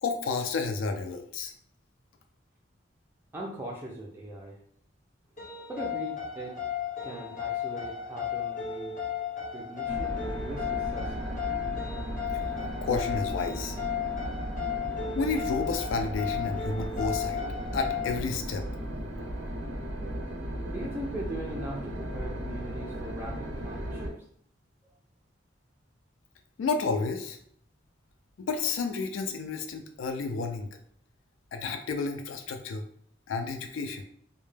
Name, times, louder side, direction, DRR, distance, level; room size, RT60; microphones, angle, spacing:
voice 1, 0.0-1.5 12.8-13.8 15.2-17.4 17.7-18.7 26.6-27.4 28.4-30.7 31.5-32.9 33.3-34.0, left 4 dB, 80° left, 6 dB, 0.3 m, -31 dB
voice 2, 3.3-4.6 5.7-6.6 7.0-9.0 9.5-11.4 20.6-24.2, right 1 dB, 10° right, -3 dB, 0.3 m, -40 dB
sound 1, 5.4-18.2, left 8 dB, 40° left, 0.6 m, -34 dB
sound 2, 9.9-24.1, equal, 80° right, 0.5 m, -36 dB
2.1 x 2.0 x 3.1 m, 0.65 s
head